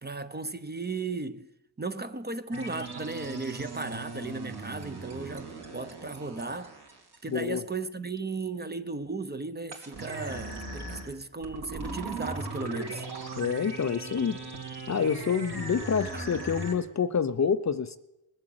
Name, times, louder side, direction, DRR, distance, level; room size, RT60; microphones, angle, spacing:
voice 1, 0.0-1.5 1.8-6.8 7.2-13.0 16.1-16.3, right 3 dB, 20° right, 0.8 m, -36 dB
sound 1, 2.5-7.4 9.7-16.7, right 3 dB, 55° right, 3.3 m, -39 dB
voice 2, 7.3-7.6 13.4-14.4 14.9-18.0, left 6 dB, 35° left, 0.6 m, -27 dB
20.5 x 7.5 x 7.8 m
cardioid pair, 70°, 50 cm